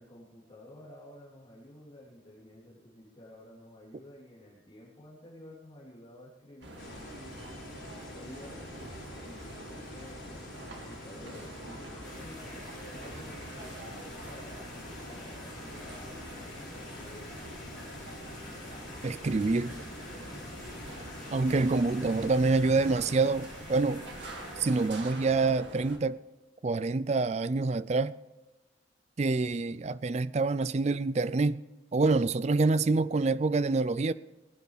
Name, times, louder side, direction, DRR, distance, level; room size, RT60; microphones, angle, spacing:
voice 1, 0.0-6.8 8.1-14.6 15.0-17.3 19.8-20.6, left 1 dB, 25° left, 3.3 m, -52 dB
sound 1, 6.6-26.0, right 1 dB, 75° right, 2.2 m, -46 dB
sound 2, 6.8-23.2, left 2 dB, 90° left, 4.1 m, -47 dB
sound 3, 12.0-24.9, left 1 dB, 5° left, 5.2 m, -48 dB
voice 2, 19.0-19.9 21.3-24.0 24.6-26.2 26.6-28.1 29.2-31.6 31.9-34.1, right 3 dB, 35° right, 0.4 m, -26 dB
20.5 x 9.4 x 5.0 m
head